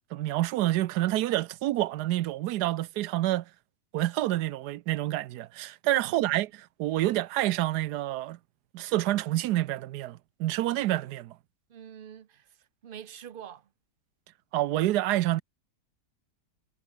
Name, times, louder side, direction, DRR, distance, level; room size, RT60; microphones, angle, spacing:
voice 1, 0.1-3.4 3.9-8.4 8.7-11.4 14.5-15.4, right 15 dB, 80° right, 1.2 m, -28 dB
voice 2, 6.0-6.4 11.7-13.7, right 9 dB, 55° right, 0.6 m, -46 dB
omnidirectional pair, 1.7 m